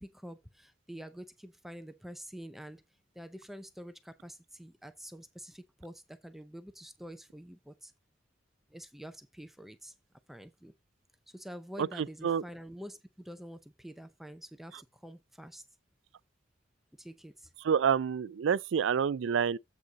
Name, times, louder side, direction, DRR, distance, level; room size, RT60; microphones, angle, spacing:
voice 1, 0.0-2.8 3.1-7.9 8.7-9.9 10.3-10.7 11.3-15.6 17.0-17.5, equal, ahead, 0.5 m, -47 dB
voice 2, 11.8-12.4 17.6-19.6, right 7 dB, 80° right, 0.4 m, -28 dB
8.0 x 5.1 x 3.9 m
head